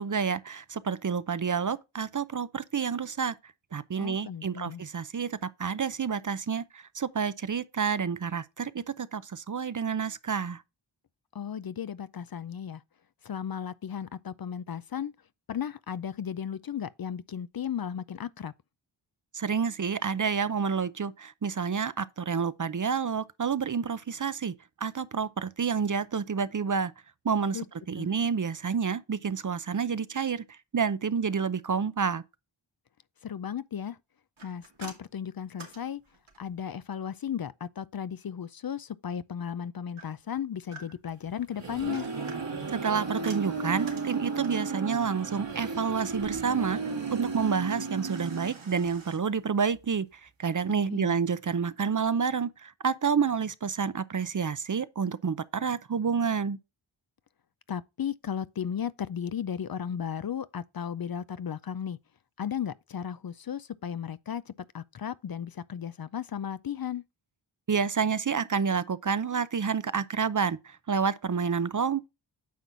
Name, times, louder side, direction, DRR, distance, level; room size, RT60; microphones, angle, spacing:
voice 1, 0.0-3.3 3.7-10.6 19.3-24.5 24.8-26.9 27.2-27.6 27.9-32.2 42.7-46.8 47.1-56.6 67.7-72.1, right 6 dB, 40° right, 0.6 m, -29 dB
voice 2, 4.0-4.8 11.3-12.8 13.2-15.1 15.5-18.5 27.5-27.7 28.0-28.1 33.2-34.0 34.4-36.0 36.4-42.1 50.9-51.2 57.7-62.0 62.4-67.0, left 8 dB, 50° left, 0.5 m, -35 dB
sound 1, 34.4-36.6 40.0-41.2 41.7-44.7 48.0-49.2, right 3 dB, 80° right, 2.4 m, -49 dB
sound 2, 41.3-49.0, right 4 dB, 65° right, 1.8 m, -34 dB
9.3 x 6.0 x 2.6 m
wide cardioid pair, 60°, 47 cm